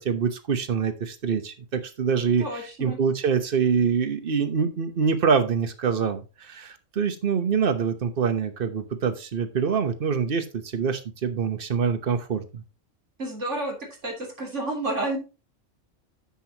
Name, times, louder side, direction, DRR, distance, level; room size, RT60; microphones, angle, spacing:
voice 1, 0.0-2.4 2.8-12.6, right 6 dB, 50° right, 9 dB, 1.2 m, -25 dB
voice 2, 2.4-3.0 13.2-13.8 14.0-15.2, right 2 dB, 70° right, 0 dB, 3.6 m, -30 dB
9.8 x 7.8 x 2.9 m, 0.30 s
omnidirectional pair, 1.3 m